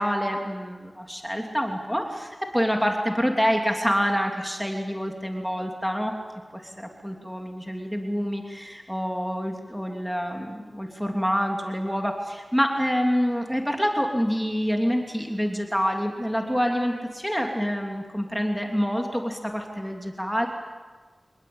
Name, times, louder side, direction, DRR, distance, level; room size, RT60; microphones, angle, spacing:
voice 1, 0.0-6.1 6.5-20.5, equal, ahead, 2 dB, 3.0 m, -27 dB
27.0 x 20.0 x 8.8 m, 1.4 s
wide cardioid pair, 65°, 0 cm